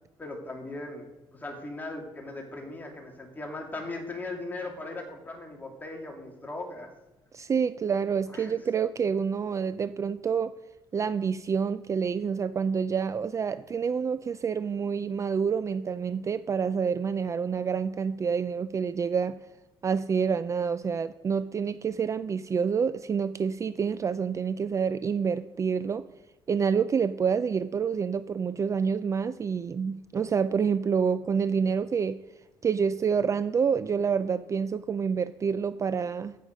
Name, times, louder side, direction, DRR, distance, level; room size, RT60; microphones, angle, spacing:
voice 1, 0.2-1.1 1.3-6.9 8.3-8.5, left 2 dB, 20° left, 1 dB, 2.6 m, -38 dB
voice 2, 7.3-10.5 10.9-19.4 19.8-26.0 26.5-32.2 32.6-36.4, right 6 dB, 30° right, 13 dB, 0.4 m, -28 dB
14.5 x 6.5 x 5.2 m, 1.0 s
cardioid pair, 115°, 10 cm